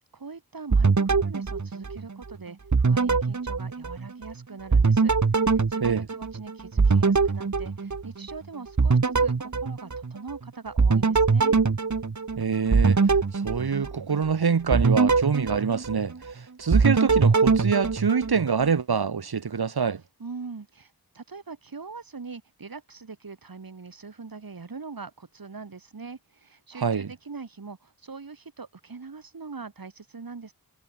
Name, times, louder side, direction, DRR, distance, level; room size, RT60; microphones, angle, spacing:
voice 1, 0.1-11.6 20.2-30.5, right 4 dB, 70° right, 4.8 m, -42 dB
sound 1, 0.7-2.3 2.7-4.3 4.7-8.4 8.8-10.4 10.8-14.2 14.7-16.3 16.7-18.7, right 4 dB, 50° right, 1.9 m, -23 dB
voice 2, 12.4-13.0 13.3-20.0 26.8-27.1, right 6 dB, 90° right, 2.5 m, -25 dB
wide cardioid pair, 55°, 37 cm